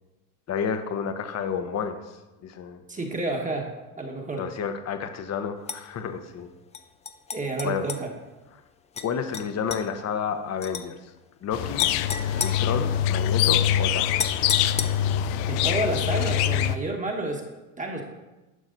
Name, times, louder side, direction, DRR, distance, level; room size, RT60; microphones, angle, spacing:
voice 1, 0.5-2.0 2.4-2.8 4.4-6.5 7.6-7.9 9.0-11.1 11.4-11.9 12.4-14.3, left 7 dB, 35° left, 8 dB, 1.0 m, -30 dB
voice 2, 2.9-3.7 4.0-4.4 7.3-8.1 15.5-17.4 17.8-18.0, right 2 dB, 15° right, 1 dB, 1.4 m, -29 dB
sound 1, 5.7-5.8 6.7-8.0 8.9-9.1 9.3-9.8 10.6-10.9 11.8-13.3 14.2-15.2, left 6 dB, 15° left, 0.4 m, -33 dB
sound 2, 11.5-16.8, left 10 dB, 65° left, 0.6 m, -24 dB
11.0 x 5.9 x 3.9 m, 1.1 s
supercardioid pair, 100°, 47 cm